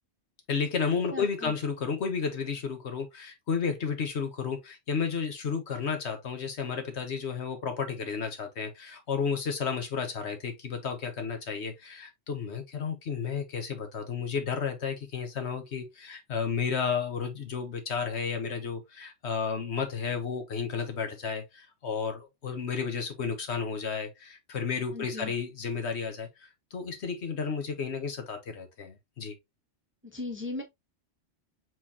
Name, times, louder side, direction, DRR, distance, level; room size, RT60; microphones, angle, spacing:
voice 1, 0.5-29.4, left 6 dB, 70° left, 1.3 m, -32 dB
voice 2, 1.1-1.5 24.9-25.3 30.0-30.6, left 2 dB, 10° right, 0.8 m, -37 dB
4.6 x 3.9 x 2.7 m
omnidirectional pair, 1.2 m